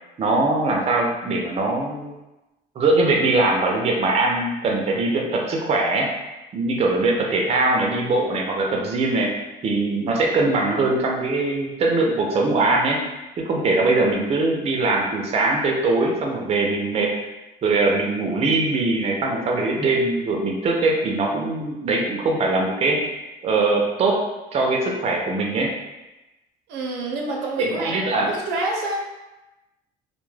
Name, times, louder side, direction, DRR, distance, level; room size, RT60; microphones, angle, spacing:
voice 1, 0.2-2.1 2.8-6.1 6.5-9.3 9.6-13.0 13.4-17.1 17.6-23.1 23.4-24.2 24.5-25.7 27.6-28.3, right 2 dB, 35° right, 0 dB, 0.5 m, -21 dB
voice 2, 26.7-29.0, right 2 dB, 90° right, -1 dB, 0.6 m, -27 dB
2.2 x 2.1 x 3.1 m, 1.0 s
cardioid pair, 110°, 17 cm